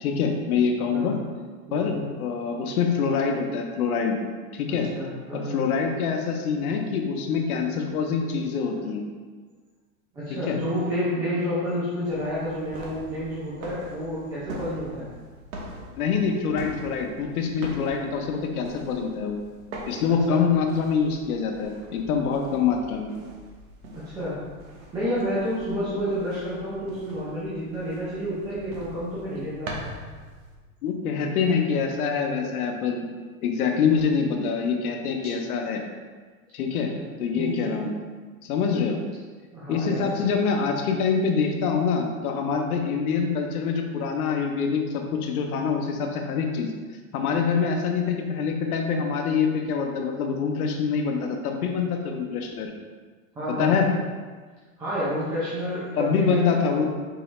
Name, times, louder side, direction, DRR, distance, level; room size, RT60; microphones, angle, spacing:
voice 1, 0.0-1.1 1.7-4.2 4.5-4.9 5.3-9.0 10.5-10.6 16.0-19.4 19.9-23.1 30.8-33.1 33.4-35.8 36.5-36.9 37.2-37.9 38.4-39.0 39.7-46.7 47.1-52.7 53.6-53.9 55.9-56.9, left 6 dB, 80° left, 2 dB, 0.8 m, -25 dB
voice 2, 1.7-2.0 4.7-5.6 10.1-15.1 20.3-20.4 24.1-24.4 24.9-29.8 36.9-37.0 37.3-37.7 39.5-40.1 53.3-53.8 54.8-56.9, equal, 10° right, -10 dB, 0.5 m, -30 dB
sound 1, 12.1-30.6, right 1 dB, 65° right, 1.0 m, -43 dB
4.8 x 3.2 x 3.0 m, 1.4 s
supercardioid pair, 160°, 43 cm